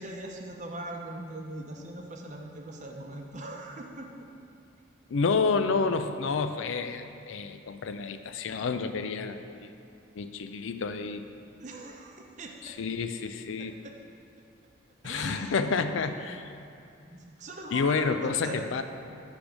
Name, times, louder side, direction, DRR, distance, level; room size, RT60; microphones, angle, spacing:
voice 1, 0.0-4.3 11.6-12.8 13.8-13.9 15.0-15.6 16.0-16.1 17.0-18.8, right 2 dB, 35° right, 1 dB, 0.7 m, -41 dB
voice 2, 5.1-9.7 10.1-11.2 12.6-13.8 15.0-16.5 17.7-18.8, left 4 dB, 75° left, 9 dB, 0.4 m, -29 dB
10.0 x 3.5 x 6.1 m, 2.5 s
head